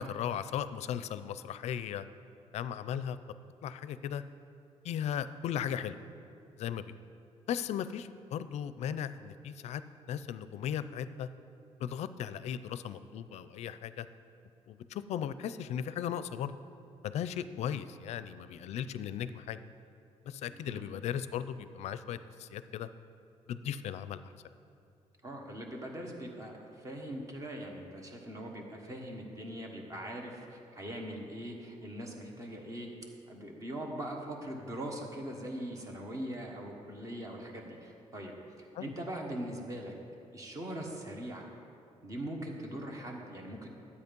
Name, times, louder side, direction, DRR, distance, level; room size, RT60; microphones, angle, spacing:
voice 1, 0.0-2.0 2.5-3.2 3.6-4.2 4.8-6.0 6.6-6.8 7.5-9.8 10.1-11.3 11.8-14.1 14.7-16.5 17.0-19.6 20.3-22.9 23.5-24.2 38.7-38.9, left 9 dB, 70° left, 13 dB, 0.5 m, -37 dB
voice 2, 20.5-20.9 25.2-32.9 33.3-39.9 40.3-41.5 42.0-43.7, right 1 dB, 30° right, 1 dB, 1.4 m, -41 dB
12.0 x 8.4 x 5.3 m, 2.5 s
cardioid pair, 160°, 12 cm